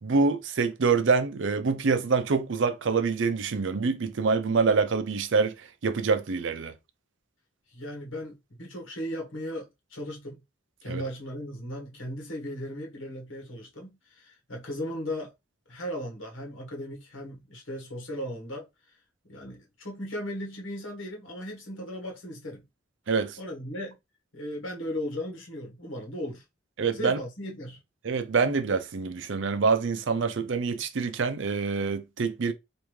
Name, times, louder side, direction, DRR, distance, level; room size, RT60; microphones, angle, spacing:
voice 1, 0.0-6.7 10.9-11.0 23.1-23.4 26.8-27.2 28.0-32.5, right 4 dB, 70° right, 0.5 m, -26 dB
voice 2, 7.7-10.4 10.8-15.3 15.7-18.7 19.2-22.6 23.4-24.0 24.3-26.4 26.9-27.8, equal, 85° left, 1.4 m, -37 dB
3.5 x 2.6 x 3.1 m
head